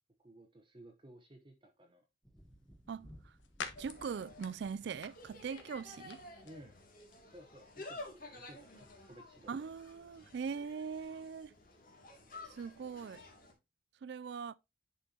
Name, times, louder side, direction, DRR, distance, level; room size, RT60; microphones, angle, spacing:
voice 1, 0.2-2.0 6.4-6.8 7.2-9.7, right 1 dB, 25° right, 1.0 m, -56 dB
Thunder, 2.2-6.1 7.4-7.5, equal, 5° left, 1.0 m, -60 dB
sound 1, 2.4-11.0, left 5 dB, 70° left, 1.3 m, -53 dB
Insect, 3.8-13.5, left 2 dB, 45° left, 2.4 m, -52 dB
voice 2, 3.8-6.2 9.5-11.5 12.5-13.2 14.0-14.5, right 6 dB, 55° right, 0.3 m, -41 dB
10.5 x 5.5 x 2.8 m
head